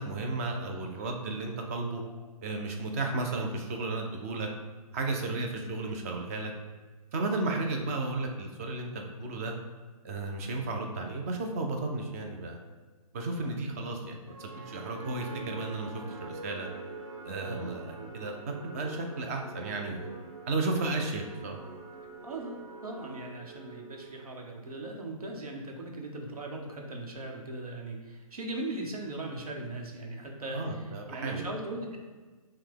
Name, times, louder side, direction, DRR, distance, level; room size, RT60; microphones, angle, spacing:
voice 1, 0.0-2.0 2.4-4.5 4.9-6.5 7.1-9.5 10.0-12.6 13.1-16.7 17.2-20.1 20.5-21.6 30.5-31.5, right 2 dB, 25° right, 3 dB, 0.5 m, -33 dB
sound 1, 14.3-24.5, right 3 dB, 45° right, 1.1 m, -45 dB
voice 2, 17.4-18.1 22.2-32.0, right 2 dB, 80° right, 1 dB, 1.0 m, -39 dB
5.6 x 2.2 x 3.5 m, 1.3 s
hypercardioid pair, 150°, 19 cm